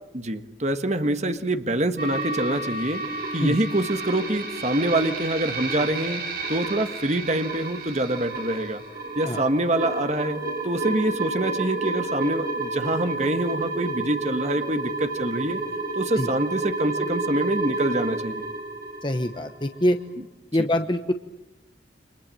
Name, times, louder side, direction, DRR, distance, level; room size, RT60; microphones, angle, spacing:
voice 1, 0.1-3.0 3.3-8.8 9.1-15.6 15.9-18.5 20.6-20.7, right 1 dB, 40° right, 8 dB, 1.5 m, -25 dB
sound 1, 2.0-19.9, right 2 dB, 60° right, 6.8 m, -31 dB
voice 2, 19.0-20.0 20.5-21.1, left 1 dB, 25° left, 7 dB, 1.1 m, -24 dB
30.0 x 26.0 x 7.7 m, 0.93 s
head